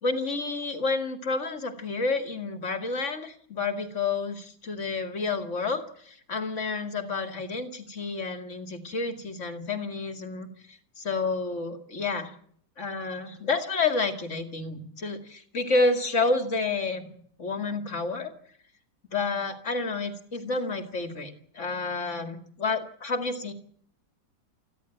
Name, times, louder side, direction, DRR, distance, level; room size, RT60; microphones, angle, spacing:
voice 1, 0.0-10.5 11.0-12.3 12.8-17.1 17.4-18.3 19.1-23.5, left 3 dB, 40° left, 7 dB, 2.3 m, -29 dB
28.5 x 11.0 x 9.1 m, 0.64 s
omnidirectional pair, 2.1 m